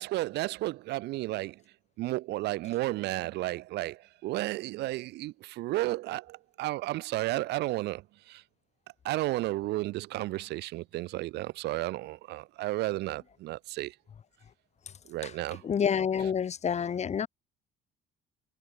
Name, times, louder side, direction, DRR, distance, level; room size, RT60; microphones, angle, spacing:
voice 1, 0.0-1.6 2.0-8.0 8.3-8.4 9.1-13.9 15.1-15.6, right 18 dB, 85° right, 3.4 m, -33 dB
voice 2, 15.6-17.3, left 7 dB, 40° left, 3.4 m, -28 dB
cardioid pair, 110°, 17 cm